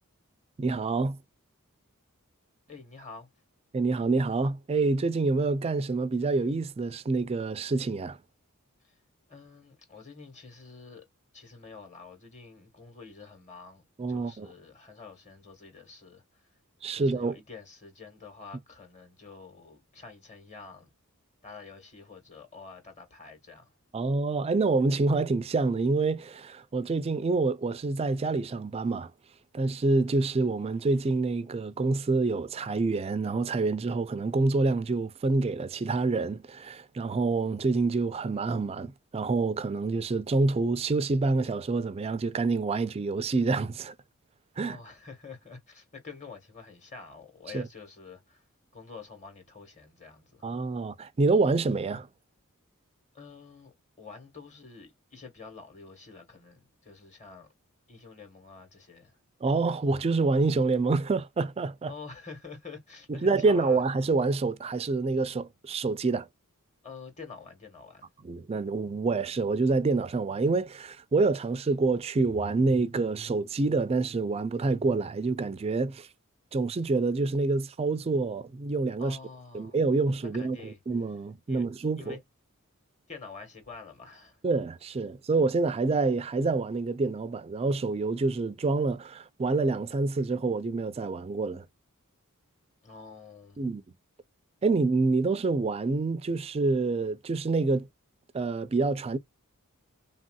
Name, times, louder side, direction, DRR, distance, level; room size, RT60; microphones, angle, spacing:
voice 1, 0.6-1.2 3.7-8.2 14.0-14.5 16.8-17.4 23.9-29.1 29.5-43.9 44.6-44.8 47.5-47.7 50.4-52.1 59.4-61.9 63.1-66.3 68.2-76.1 76.5-79.2 79.5-82.2 84.4-91.7 93.6-93.8 94.6-97.9 98.3-99.2, right 3 dB, 25° right, 0.3 m, -27 dB
voice 2, 2.7-3.3 8.8-8.9 9.3-11.0 11.3-16.4 16.9-20.9 21.4-23.7 44.6-48.4 48.7-50.4 53.1-57.5 57.9-59.2 61.9-63.8 66.8-68.1 79.0-79.8 80.2-80.8 81.5-81.6 82.0-82.2 83.1-84.4 92.8-93.6, left 4 dB, 35° left, 1.2 m, -47 dB
3.4 x 2.6 x 2.3 m
head